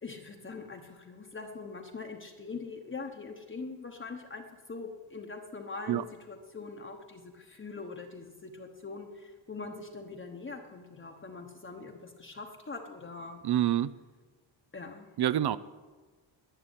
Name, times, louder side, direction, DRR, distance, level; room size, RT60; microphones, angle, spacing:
voice 1, 0.0-13.4 14.7-15.1, left 4 dB, 25° left, 3 dB, 1.0 m, -43 dB
voice 2, 13.4-13.9 15.2-15.6, right 12 dB, 55° right, 16 dB, 0.5 m, -26 dB
11.5 x 9.0 x 9.9 m, 1.3 s
wide cardioid pair, 175°, 48 cm